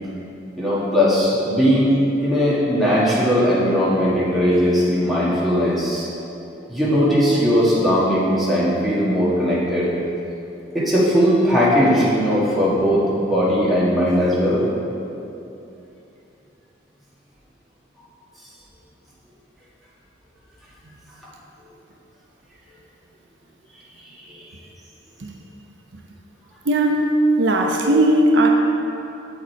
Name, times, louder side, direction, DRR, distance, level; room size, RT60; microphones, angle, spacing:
voice 1, 0.6-2.0 2.2-6.1 6.7-9.9 10.7-14.6 24.2-24.4 27.8-27.9, equal, ahead, -9 dB, 1.5 m, -18 dB
voice 2, 26.6-27.1 27.4-28.5, right 1 dB, 80° right, 1 dB, 0.7 m, -17 dB
8.1 x 5.0 x 4.5 m, 2.8 s
head